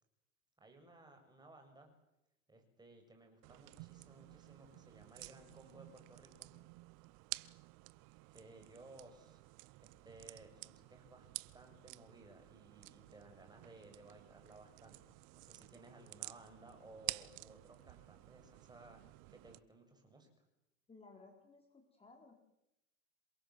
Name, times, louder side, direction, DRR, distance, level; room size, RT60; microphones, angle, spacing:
voice 1, 0.6-1.9 2.5-6.5 8.3-9.4 9.8-11.3 11.5-19.0 19.3-20.4, right 2 dB, 10° right, 4 dB, 7.4 m, -59 dB
sound 1, 3.4-19.6, right 24 dB, 55° right, 1.0 m, -51 dB
voice 2, 20.9-22.3, left 3 dB, 15° left, 2 dB, 4.6 m, -59 dB
27.5 x 22.0 x 7.9 m, 0.87 s
supercardioid pair, 115°, 39 cm